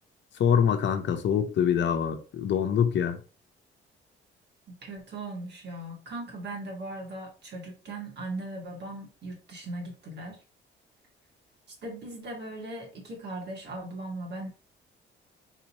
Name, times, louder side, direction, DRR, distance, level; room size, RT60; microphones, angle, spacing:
voice 1, 0.4-3.2, left 8 dB, 65° left, 0.9 m, -24 dB
voice 2, 4.7-10.4 11.8-14.5, right 2 dB, 60° right, 2.1 m, -38 dB
4.1 x 2.9 x 4.1 m
cardioid pair, 90°, 20 cm